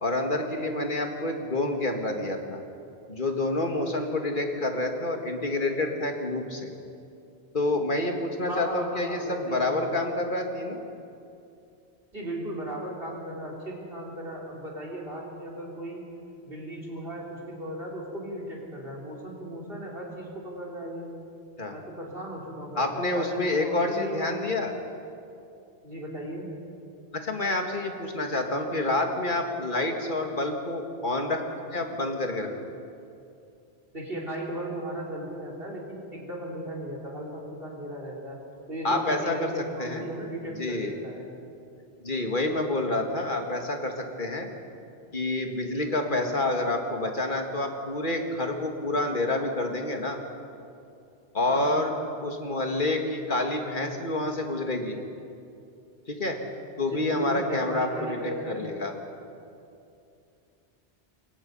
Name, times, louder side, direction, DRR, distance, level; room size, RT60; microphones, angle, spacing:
voice 1, 0.0-2.6 3.1-6.7 7.5-10.8 21.6-21.8 22.8-24.7 27.2-31.4 31.7-32.5 38.8-39.5 39.8-40.0 40.6-40.9 42.0-44.5 45.1-50.2 51.3-51.9 52.2-55.0 56.1-56.4 56.8-58.9, left 2 dB, 50° left, 3 dB, 2.3 m, -28 dB
voice 2, 8.5-10.0 12.1-16.0 16.5-21.1 21.7-24.6 25.8-26.5 33.9-38.4 38.7-41.3 51.5-51.8 56.9-58.7, right 1 dB, 60° right, -2 dB, 4.2 m, -37 dB
27.5 x 22.5 x 5.6 m, 2.6 s
omnidirectional pair, 1.1 m